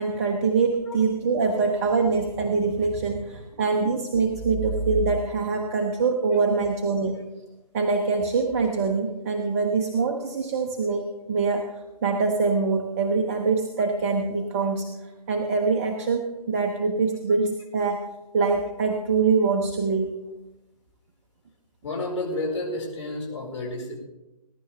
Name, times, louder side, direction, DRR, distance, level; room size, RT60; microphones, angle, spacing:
voice 1, 0.0-7.2 7.7-11.7 12.0-14.9 15.3-18.0 18.3-20.1, right 4 dB, 20° right, 4 dB, 0.7 m, -24 dB
voice 2, 21.8-24.0, left 2 dB, 45° left, -1 dB, 4.8 m, -30 dB
20.5 x 11.0 x 3.4 m, 1.0 s
figure-of-eight pair, 145°, 21 cm